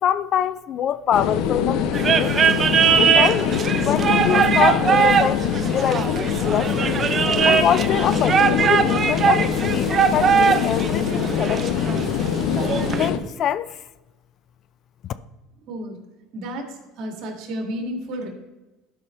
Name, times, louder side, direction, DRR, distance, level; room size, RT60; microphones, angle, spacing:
voice 1, 0.0-2.5 3.0-6.9 7.4-11.9 12.9-13.8 15.0-15.1, left 9 dB, 45° left, 0.3 m, -25 dB
sound 1, 1.1-13.2, left 7 dB, 65° left, 0.7 m, -23 dB
sound 2, 1.9-13.1, right 7 dB, 30° right, 0.5 m, -21 dB
voice 2, 16.3-16.7 17.0-18.3, equal, 55° right, 2.1 m, -31 dB
12.0 x 5.6 x 3.2 m
supercardioid pair, 115°, 0 cm